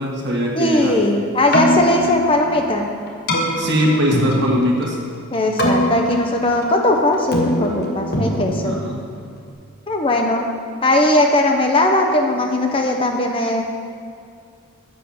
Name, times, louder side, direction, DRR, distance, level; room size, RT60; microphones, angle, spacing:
voice 1, 0.0-0.9 3.6-5.0 8.6-9.0, equal, 50° right, -1 dB, 1.4 m, -20 dB
voice 2, 0.5-2.9 5.3-8.8 9.9-10.5 10.8-13.6, left 1 dB, 25° left, 2 dB, 0.7 m, -18 dB
Keyboard (musical), 1.4-9.5, equal, 45° left, 1.1 m, -23 dB
7.8 x 6.1 x 6.9 m, 2.3 s
head